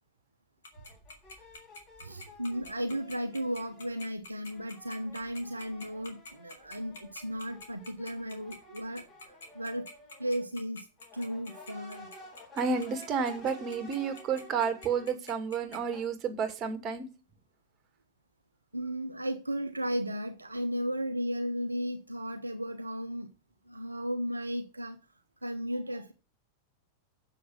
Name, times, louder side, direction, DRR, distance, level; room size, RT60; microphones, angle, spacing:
Tick-tock, 0.6-15.8, left 2 dB, 65° left, 2.6 m, -46 dB
sound 1, 0.7-4.1 4.5-10.5 11.0-15.2 15.6-16.0, left 1 dB, 30° left, 5.7 m, -52 dB
voice 1, 2.0-9.1 9.5-9.9 10.2-10.9 11.1-12.1 18.7-23.3 23.7-25.0 25.4-26.1, equal, 80° right, 0.9 m, -35 dB
voice 2, 12.5-17.1, right 6 dB, 30° right, 2.3 m, -31 dB
7.4 x 6.3 x 7.7 m
figure-of-eight pair, 90°, 0 cm